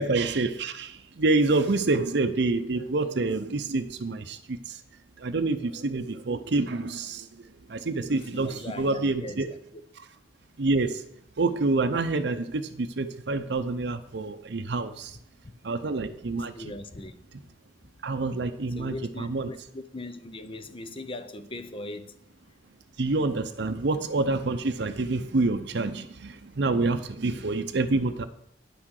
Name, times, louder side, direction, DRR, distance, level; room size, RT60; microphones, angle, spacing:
voice 1, 0.0-4.8 5.2-7.3 7.7-9.5 10.6-11.0 11.4-15.2 15.6-16.5 18.0-19.5 23.0-28.3, right 3 dB, 65° right, 8 dB, 0.7 m, -27 dB
voice 2, 8.3-9.8 16.5-17.1 18.8-22.1 27.3-27.4 27.9-28.0, left 2 dB, 30° left, 10 dB, 0.8 m, -40 dB
10.0 x 6.0 x 6.5 m, 0.73 s
head